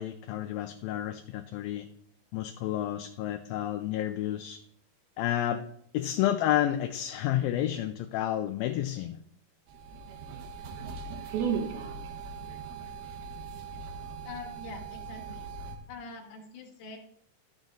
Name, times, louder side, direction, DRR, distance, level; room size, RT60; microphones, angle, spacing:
voice 1, 0.0-1.9 2.3-4.6 5.2-5.6 5.9-9.2, left 12 dB, 80° left, 6 dB, 2.4 m, -30 dB
sound 1, 9.7-15.8, right 6 dB, 80° right, 3.2 m, -37 dB
voice 2, 14.2-15.5 15.9-17.0, left 4 dB, 65° left, 3 dB, 2.8 m, -44 dB
12.5 x 7.4 x 3.9 m, 0.65 s
omnidirectional pair, 4.3 m